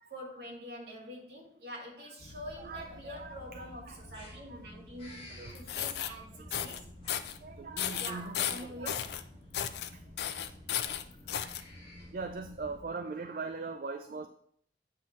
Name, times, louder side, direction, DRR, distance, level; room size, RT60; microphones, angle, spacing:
voice 1, 0.1-6.9 8.0-9.1, equal, 65° right, -3 dB, 2.4 m, -45 dB
sound 1, 2.2-12.8, left 1 dB, 35° left, 2.2 m, -51 dB
voice 2, 2.6-3.3 3.9-4.0 4.5-4.6 5.4-6.5 7.4-8.9 11.3-11.5 12.1-14.3, right 4 dB, 50° right, 7 dB, 0.4 m, -41 dB
sound 2, 5.5-6.1 6.5-6.8 7.1-7.4 7.8-9.2 9.5-9.9 10.2-11.6, left 10 dB, 70° left, 0.4 m, -34 dB
8.5 x 5.9 x 3.1 m, 0.64 s
head